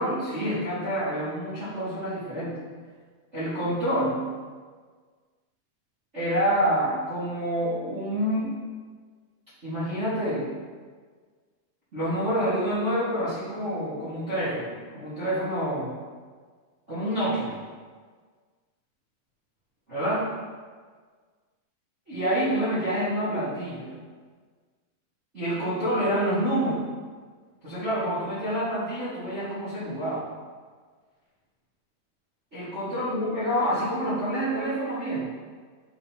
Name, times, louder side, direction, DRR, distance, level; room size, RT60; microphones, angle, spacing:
voice 1, 0.0-2.6 3.3-4.2 6.1-8.5 9.6-10.5 11.9-15.9 16.9-17.5 19.9-20.3 22.1-23.9 25.3-26.8 27.6-30.2 32.5-35.3, equal, 50° right, -13 dB, 0.8 m, -27 dB
9.6 x 3.7 x 2.8 m, 1.6 s
omnidirectional pair, 4.5 m